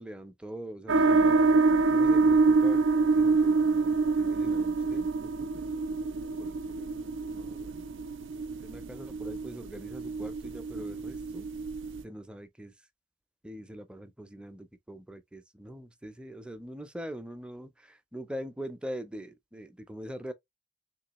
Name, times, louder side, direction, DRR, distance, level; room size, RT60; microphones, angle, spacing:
voice 1, 0.0-1.5 1.9-2.8 3.1-5.7 6.4-6.9 7.3-7.9 8.6-11.5 12.0-12.7 13.4-20.3, equal, 5° right, 0.5 m, -43 dB
sound 1, 0.9-12.0, right 4 dB, 85° right, 0.5 m, -26 dB
3.7 x 2.8 x 3.0 m
head